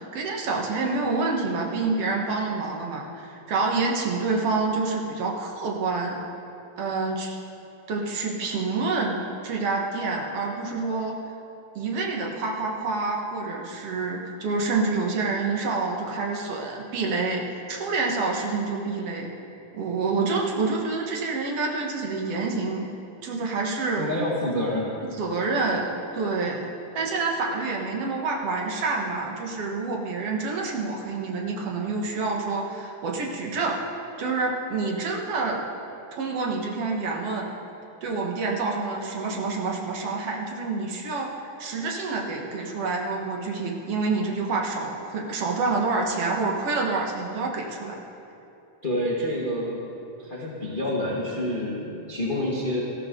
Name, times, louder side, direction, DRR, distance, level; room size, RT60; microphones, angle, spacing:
voice 1, 0.0-6.2 6.8-7.4 7.9-9.2 9.4-11.2 11.8-19.3 19.7-22.9 23.2-24.0 25.2-26.7 26.9-33.8 34.2-35.6 36.2-37.5 38.0-48.0, right 3 dB, 55° right, -1 dB, 2.3 m, -27 dB
voice 2, 23.9-24.9 48.8-49.8 50.2-52.8, left 1 dB, 30° left, -4 dB, 0.8 m, -28 dB
18.5 x 13.5 x 3.8 m, 2.7 s
omnidirectional pair, 3.6 m